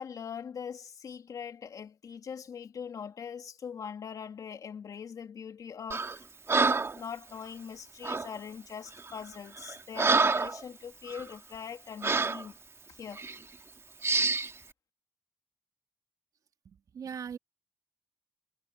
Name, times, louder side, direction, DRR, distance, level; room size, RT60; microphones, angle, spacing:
voice 1, 0.0-6.1 6.9-12.5 13.0-13.2, left 7 dB, 70° left, 2.8 m, -42 dB
Breathing, 5.9-6.2 6.5-7.0 8.0-8.3 9.0-9.2 9.6-10.6 11.1-11.2 12.0-12.4 13.2-13.4 14.0-14.5, right 4 dB, 45° right, 2.7 m, -27 dB
voice 2, 16.7-17.4, right 7 dB, 70° right, 3.8 m, -40 dB
supercardioid pair, 45°, 6 cm